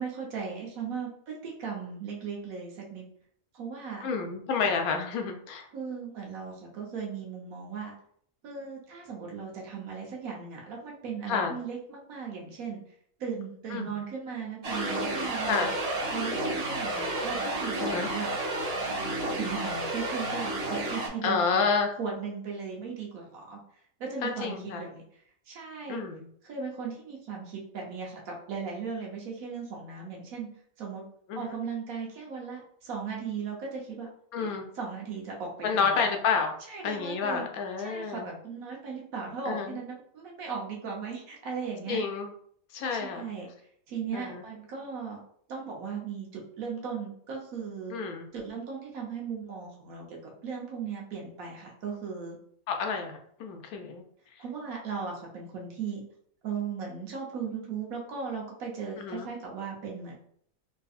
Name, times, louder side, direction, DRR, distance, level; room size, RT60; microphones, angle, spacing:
voice 1, 0.0-3.0 3.5-4.0 5.7-7.9 8.4-12.8 13.2-15.7 16.1-18.3 18.9-21.6 22.0-23.6 24.0-25.0 25.5-26.0 26.4-30.5 30.8-31.0 31.4-34.1 34.4-34.5 34.8-36.0 36.7-37.4 37.8-42.0 42.9-43.5 43.9-45.2 45.5-47.9 48.3-52.3 54.4-56.0 56.4-60.1, right 5 dB, 70° right, -1 dB, 1.2 m, -37 dB
voice 2, 4.0-5.7 11.3-11.5 13.7-13.9 15.5-15.7 17.8-18.1 21.2-21.9 24.2-24.8 25.9-26.3 31.3-31.5 34.3-34.6 35.6-36.5 36.8-38.3 39.4-39.8 41.9-42.3 42.7-43.3 44.1-44.4 47.9-48.3 52.7-54.0 59.0-59.3, left 5 dB, 75° left, 4 dB, 1.0 m, -29 dB
sound 1, 14.6-21.1, right 2 dB, 55° right, 0.8 m, -31 dB
3.7 x 2.6 x 2.4 m, 0.63 s
omnidirectional pair, 1.6 m